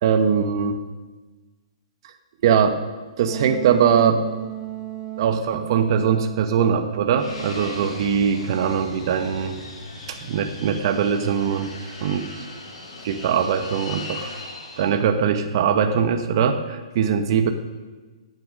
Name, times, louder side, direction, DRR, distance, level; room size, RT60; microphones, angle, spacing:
voice 1, 0.0-0.8 2.4-2.8 3.2-4.2 5.2-9.6 10.1-11.7 12.0-12.3 13.0-14.3 14.8-17.5, right 7 dB, 45° right, 7 dB, 1.2 m, -21 dB
Wind instrument woodwind instrument, 3.2-8.1, right 14 dB, 20° right, 0.7 m, -35 dB
Fixed-wing aircraft airplane, 7.2-15.0, left 2 dB, 70° left, 4.4 m, -38 dB
14.5 x 9.4 x 5.3 m, 1.3 s
hypercardioid pair, 150°, 3 cm